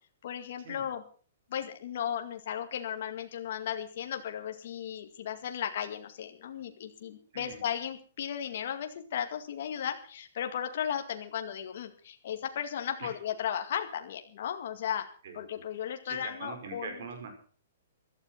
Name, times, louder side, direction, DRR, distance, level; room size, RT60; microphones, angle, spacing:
voice 1, 0.2-1.0 1.5-15.1 15.3-16.9, left 9 dB, 50° left, 5 dB, 2.1 m, -35 dB
voice 2, 7.3-7.6 13.0-13.1 15.2-15.4 16.1-17.3, right 5 dB, 55° right, 5 dB, 5.5 m, -42 dB
16.0 x 12.5 x 5.9 m, 0.42 s
hypercardioid pair, 170°, 0 cm